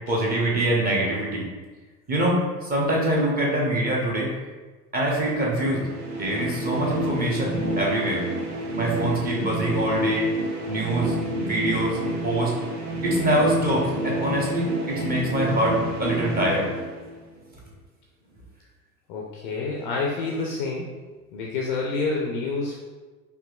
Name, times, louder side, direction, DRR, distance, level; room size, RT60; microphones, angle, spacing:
voice 1, 0.1-1.4 2.1-4.3 4.9-5.8 6.2-8.2 8.8-10.3 10.7-12.5 13.0-15.7 16.0-16.7, right 1 dB, 20° right, -3 dB, 0.8 m, -24 dB
sound 1, 5.5-17.4, right 1 dB, 65° right, 0.8 m, -29 dB
voice 2, 19.1-20.9 21.3-22.7, left 3 dB, 35° left, -2 dB, 0.4 m, -28 dB
4.5 x 2.6 x 2.4 m, 1.3 s
figure-of-eight pair, 80°, 48 cm